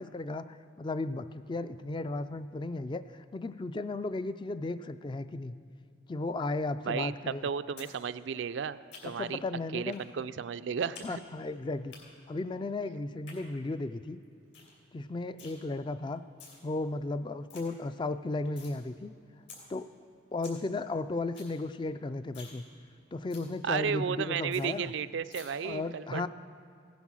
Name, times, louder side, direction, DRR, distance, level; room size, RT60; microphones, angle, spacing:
voice 1, 0.0-5.6 6.1-7.5 9.2-10.0 11.0-11.9 12.3-14.2 14.9-16.2 16.6-19.1 19.7-19.9 20.3-22.6 23.1-24.9 25.6-26.3, left 2 dB, 25° left, 12 dB, 0.3 m, -35 dB
voice 2, 6.8-9.4 9.7-11.2 23.6-26.3, right 7 dB, 70° right, 13 dB, 0.4 m, -33 dB
sound 1, 7.8-7.9 8.2-9.3 9.9-10.1 10.4-11.1 11.4-12.0 13.0-13.4 13.8-13.9 14.2-14.3 14.5-14.7 15.0-15.5 16.2-16.6 17.0-17.1 17.3-17.6 18.0-18.7 19.1-19.2 19.5-19.6 20.0-20.1 20.3-20.6 20.9-21.0 21.2-21.5 21.9-22.0 22.3-22.6 22.9-23.0 23.3-23.5 23.9-24.0 24.2-24.3 24.5-24.6 25.3-25.4, left 6 dB, 70° left, 3.8 m, -49 dB
16.5 x 9.3 x 6.2 m, 2.6 s
head